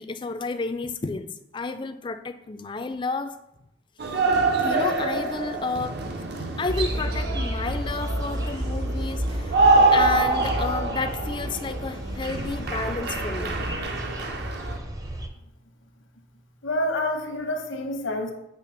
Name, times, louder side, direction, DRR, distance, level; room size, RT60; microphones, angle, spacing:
voice 1, 0.0-3.4 4.6-6.0 6.6-13.6, left 3 dB, 25° left, 9 dB, 0.3 m, -31 dB
sound 1, 4.0-14.8, right 3 dB, 55° right, 0.7 m, -25 dB
sound 2, 6.7-15.3, equal, 20° right, 0.6 m, -32 dB
voice 2, 16.6-18.3, left 1 dB, 90° left, 4 dB, 1.0 m, -27 dB
8.3 x 3.3 x 5.6 m, 0.84 s
head